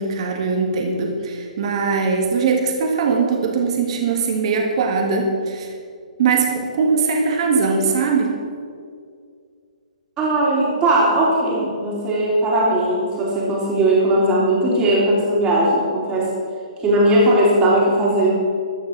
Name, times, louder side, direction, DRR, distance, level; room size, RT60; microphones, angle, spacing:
voice 1, 0.0-5.7 6.2-8.4, right 4 dB, 50° right, 2 dB, 1.8 m, -20 dB
voice 2, 10.2-16.3 16.8-18.3, right 1 dB, 20° right, -4 dB, 3.0 m, -18 dB
13.5 x 6.5 x 7.5 m, 2.1 s
hypercardioid pair, 135°, 4 cm